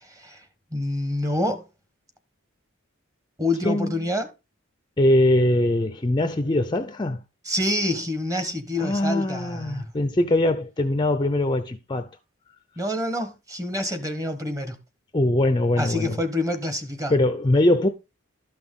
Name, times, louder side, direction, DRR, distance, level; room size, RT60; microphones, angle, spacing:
voice 1, 0.7-1.6 3.4-4.3 7.4-9.9 12.8-14.8 15.8-17.2, left 1 dB, 15° right, 1.2 m, -27 dB
voice 2, 3.6-3.9 5.0-7.2 8.8-12.1 15.1-16.2 17.1-17.9, left 1 dB, 20° left, 0.6 m, -22 dB
12.5 x 6.1 x 3.7 m
head